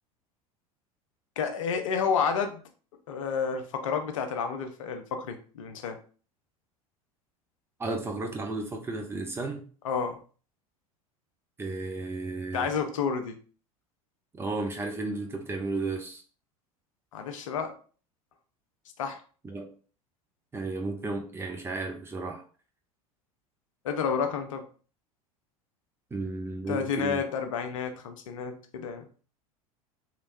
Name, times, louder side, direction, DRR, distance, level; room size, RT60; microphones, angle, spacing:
voice 1, 1.4-2.6 3.1-6.0 9.8-10.2 12.5-13.4 17.1-17.7 19.0-19.2 23.8-24.6 26.7-29.1, left 6 dB, 60° left, 0.6 m, -30 dB
voice 2, 7.8-9.6 11.6-12.7 14.3-16.2 19.4-19.7 20.5-22.4 26.1-27.2, right 3 dB, 15° right, 0.6 m, -33 dB
3.1 x 3.0 x 2.6 m
figure-of-eight pair, 75°, 19 cm